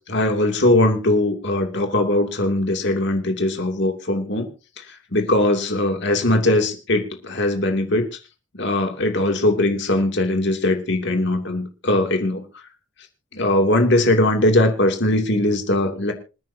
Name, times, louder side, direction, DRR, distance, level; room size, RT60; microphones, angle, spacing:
voice 1, 0.1-4.5 5.1-8.1 8.6-12.4 13.3-16.1, left 1 dB, 60° left, 4 dB, 2.8 m, -20 dB
27.0 x 9.5 x 2.8 m, 0.32 s
head